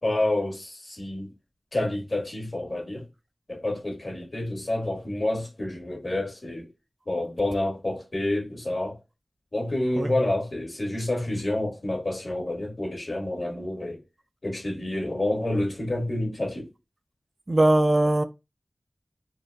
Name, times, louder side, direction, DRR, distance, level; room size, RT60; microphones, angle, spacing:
voice 1, 0.0-1.3 1.7-3.0 3.5-6.7 7.1-9.0 9.5-14.0 14.4-16.7, left 1 dB, 55° left, 1.8 m, -28 dB
voice 2, 17.5-18.2, right 1 dB, 40° right, 0.3 m, -20 dB
4.3 x 2.4 x 2.4 m
wide cardioid pair, 70°, 0 cm